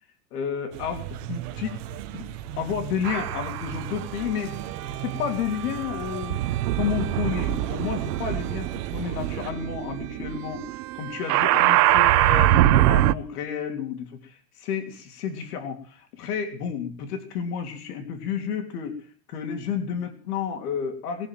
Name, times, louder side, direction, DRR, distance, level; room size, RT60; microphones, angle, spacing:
voice 1, 0.3-1.8 2.1-2.3 2.6-4.5 5.0-6.4 6.7-19.0 19.3-21.3, left 7 dB, 80° left, 5 dB, 3.4 m, -31 dB
sound 1, 0.7-9.5, right 10 dB, 55° right, 1.5 m, -37 dB
sound 2, 3.0-3.8 4.6-13.1, right 15 dB, 90° right, 0.9 m, -23 dB
20.5 x 7.1 x 9.2 m, 0.43 s
supercardioid pair, 165°, 45 cm